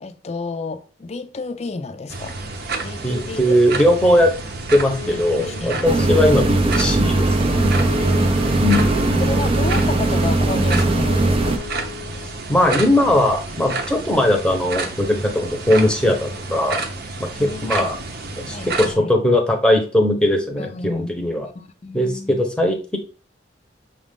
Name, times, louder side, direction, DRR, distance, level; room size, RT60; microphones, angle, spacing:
voice 1, 0.0-2.4 2.8-3.6 5.0-6.4 8.2-8.7 9.2-11.6 17.4-17.9 18.5-19.1 20.6-21.1 21.4-22.4, left 3 dB, 35° left, 0.4 m, -31 dB
sound 1, 2.1-18.9, right 3 dB, 55° right, 0.7 m, -30 dB
voice 2, 3.0-4.3 4.7-7.9 8.6-9.4 12.5-16.8 17.2-18.0 18.4-21.5 21.9-23.0, left 1 dB, 5° left, 0.8 m, -19 dB
Wind instrument woodwind instrument, 4.8-12.4, left 6 dB, 80° left, 0.8 m, -37 dB
sound 2, 5.8-11.6, right 2 dB, 30° right, 0.4 m, -19 dB
5.9 x 2.5 x 3.6 m
head